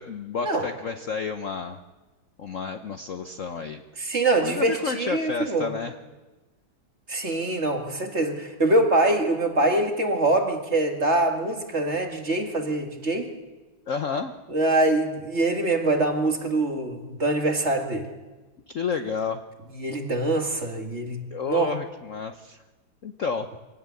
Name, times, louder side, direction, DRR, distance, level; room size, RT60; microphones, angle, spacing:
voice 1, 0.0-1.8 2.4-3.8 4.4-6.0 13.9-14.4 18.7-19.4 21.3-22.6 23.0-23.5, left 5 dB, 55° left, 7 dB, 1.0 m, -31 dB
voice 2, 4.0-5.7 7.1-13.3 14.5-18.1 19.7-21.7, right 2 dB, 35° right, 3 dB, 2.2 m, -24 dB
24.0 x 17.5 x 8.4 m, 1.2 s
omnidirectional pair, 2.2 m